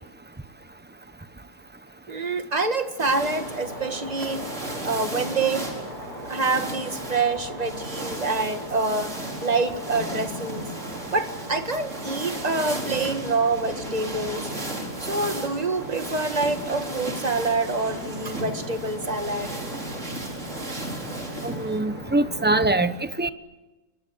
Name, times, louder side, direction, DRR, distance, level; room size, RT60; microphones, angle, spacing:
voice 1, 2.1-5.7 6.3-9.1 9.4-10.7 11.1-14.5 15.0-19.5, right 3 dB, 25° right, 7 dB, 1.8 m, -26 dB
sound 1, 3.0-21.8, right 1 dB, 45° right, 4.9 m, -36 dB
sound 2, 3.2-22.7, right 1 dB, 65° right, 7.0 m, -38 dB
voice 2, 21.4-23.3, right 2 dB, 10° right, 11 dB, 0.7 m, -23 dB
26.5 x 23.5 x 7.9 m, 1.1 s
omnidirectional pair, 1.7 m